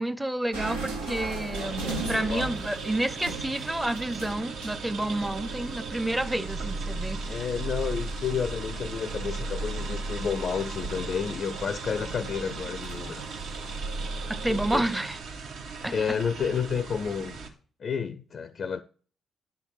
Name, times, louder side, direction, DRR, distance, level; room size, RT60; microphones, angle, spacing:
voice 1, 0.0-7.2 14.3-15.2 15.8-16.2, right 1 dB, 10° right, 0.6 m, -30 dB
sound 1, 0.5-14.8, right 2 dB, 90° right, 1.2 m, -36 dB
sound 2, 1.5-17.5, right 5 dB, 70° right, 1.1 m, -39 dB
voice 2, 2.0-2.5 7.3-13.3 14.5-14.9 15.9-17.4 17.8-18.8, left 6 dB, 50° left, 0.4 m, -31 dB
9.9 x 3.6 x 4.4 m
hypercardioid pair, 40°, 0 cm